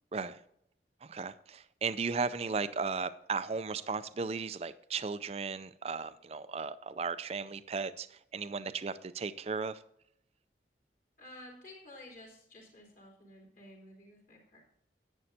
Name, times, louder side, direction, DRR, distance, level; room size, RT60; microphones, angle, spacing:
voice 1, 0.1-0.4 1.0-9.8, right 4 dB, 35° right, 13 dB, 0.4 m, -36 dB
voice 2, 11.2-14.6, left 1 dB, 50° left, -2 dB, 3.4 m, -52 dB
11.0 x 8.8 x 2.8 m, 0.74 s
head